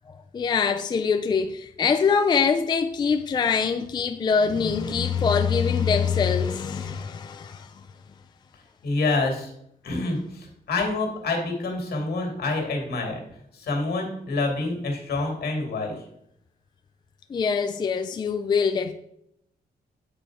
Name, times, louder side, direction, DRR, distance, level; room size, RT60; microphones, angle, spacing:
voice 1, 0.1-7.8 17.3-18.9, left 6 dB, 25° left, 0.4 m, -24 dB
voice 2, 8.8-9.5 9.8-13.2 13.5-16.0, left 3 dB, 75° left, 2.4 m, -27 dB
9.0 x 4.9 x 4.9 m
wide cardioid pair, 170°, 17 cm